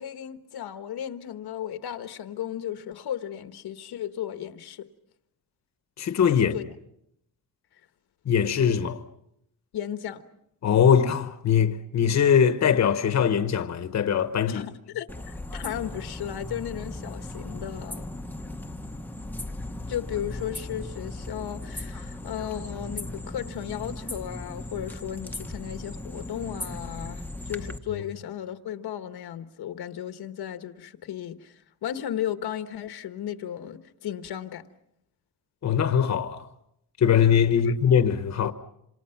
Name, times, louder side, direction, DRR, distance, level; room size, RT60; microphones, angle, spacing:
voice 1, 0.0-4.9 6.5-6.7 9.7-10.2 14.5-18.1 19.9-34.6 37.6-37.7 38.4-38.5, left 10 dB, 80° left, 1.4 m, -35 dB
voice 2, 6.0-6.6 8.2-9.0 10.6-14.6 35.6-36.5 37.0-38.5, left 8 dB, 45° left, 1.2 m, -21 dB
sound 1, 15.1-27.8, left 1 dB, 5° left, 0.9 m, -37 dB
27.5 x 26.5 x 5.9 m
wide cardioid pair, 170°, 38 cm